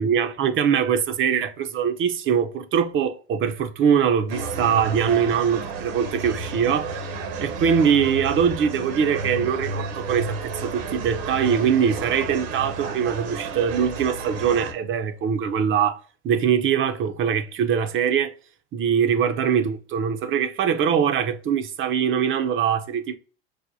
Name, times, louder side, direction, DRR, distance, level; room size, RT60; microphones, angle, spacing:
voice 1, 0.0-7.0 7.4-16.0 16.2-18.3 18.7-23.2, right 7 dB, 40° right, 0.5 m, -22 dB
sound 1, 4.3-14.7, right 3 dB, 75° right, 0.8 m, -31 dB
4.8 x 2.1 x 2.5 m
hypercardioid pair, 90°, 31 cm